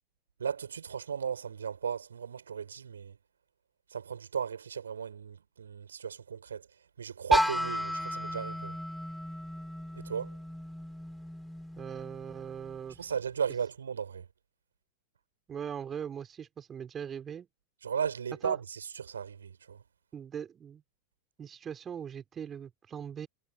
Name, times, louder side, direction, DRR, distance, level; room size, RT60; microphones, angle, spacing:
voice 1, 0.4-3.2 3.9-6.7 7.0-8.8 10.0-10.4 13.0-14.3 17.8-19.8, right 7 dB, 70° right, 5.2 m, -35 dB
sound 1, 7.3-13.1, left 1 dB, ahead, 6.3 m, -34 dB
voice 2, 11.8-13.0 15.5-17.5 18.4-18.6 20.1-20.8 21.4-23.3, right 8 dB, 25° right, 4.8 m, -40 dB
figure-of-eight pair, 90°, 0 cm